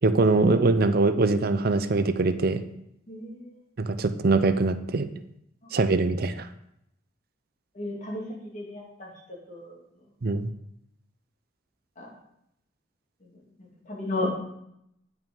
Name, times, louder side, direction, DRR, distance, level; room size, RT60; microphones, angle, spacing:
voice 1, 0.0-2.6 3.8-5.1 5.7-6.5 10.2-10.5, right 3 dB, 55° right, 11 dB, 0.6 m, -22 dB
voice 2, 3.1-3.5 7.7-8.2 8.5-9.1 9.5-9.7 12.0-12.1 13.6-14.3, left 2 dB, 45° left, -3 dB, 2.5 m, -33 dB
9.0 x 5.7 x 5.4 m, 0.79 s
head